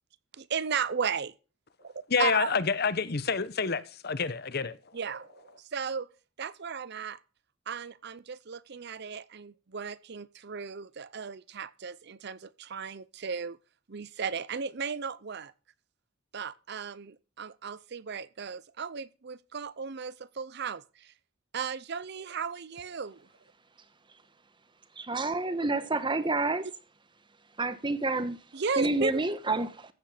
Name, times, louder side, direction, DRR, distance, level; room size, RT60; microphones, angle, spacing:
voice 1, 0.3-1.3 1.8-2.6 4.9-6.1 6.4-7.2 7.7-13.6 13.9-15.5 16.3-21.1 21.5-23.2 26.2-26.3 28.5-29.1, right 6 dB, 55° right, 0.6 m, -35 dB
voice 2, 2.1-4.8, left 5 dB, 50° left, 0.9 m, -28 dB
voice 3, 25.0-26.7 27.6-28.4 28.8-29.9, right 2 dB, 25° right, 1.2 m, -29 dB
15.0 x 8.2 x 5.0 m
head